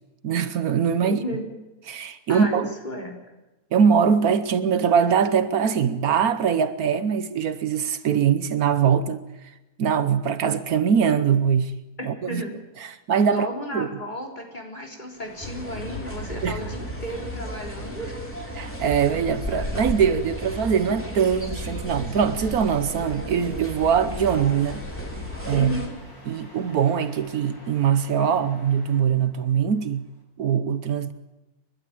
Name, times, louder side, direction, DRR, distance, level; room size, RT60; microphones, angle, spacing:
voice 1, 0.2-1.2 1.9-2.7 3.7-9.2 9.8-11.7 12.0-12.4 13.1-13.5 13.7-13.9 16.4-16.6 18.5-24.8 25.5-25.8 26.3-30.1 30.4-31.1, right 7 dB, 70° right, 1.4 m, -22 dB
voice 2, 1.0-1.4 2.3-3.1 12.0-12.5 13.3-18.1 25.5-25.9, equal, 30° left, 4.1 m, -33 dB
sound 1, 15.1-30.2, left 1 dB, 80° left, 7.5 m, -49 dB
sound 2, 15.4-25.9, equal, 10° left, 3.7 m, -34 dB
30.0 x 12.0 x 8.8 m
omnidirectional pair, 1.6 m